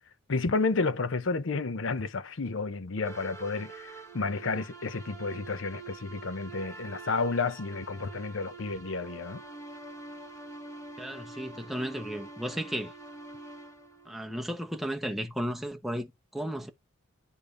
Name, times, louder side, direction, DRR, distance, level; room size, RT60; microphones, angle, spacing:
voice 1, 0.3-9.4, left 3 dB, 70° left, 0.7 m, -31 dB
sound 1, 3.0-14.8, right 3 dB, 15° left, 1.8 m, -46 dB
voice 2, 11.0-12.9 14.1-16.7, equal, ahead, 0.9 m, -34 dB
10.0 x 5.1 x 2.6 m
head